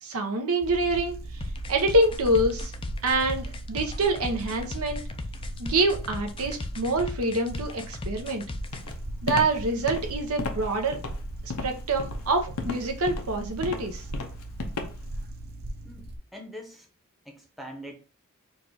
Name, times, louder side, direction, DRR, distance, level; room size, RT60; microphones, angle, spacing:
voice 1, 0.0-1.2 1.7-2.7 3.0-5.0 5.6-8.4 9.2-11.0 11.6-14.0, right 2 dB, 75° right, 0.9 m, -26 dB
sound 1, 0.6-16.2, right 1 dB, 45° right, 0.6 m, -38 dB
sound 2, 1.4-9.0, left 3 dB, 25° left, 0.4 m, -37 dB
Walk footsteps, 8.7-15.2, left 4 dB, 90° left, 0.8 m, -35 dB
voice 2, 15.8-16.9 17.2-17.9, equal, ahead, 0.8 m, -43 dB
4.5 x 2.5 x 4.6 m
head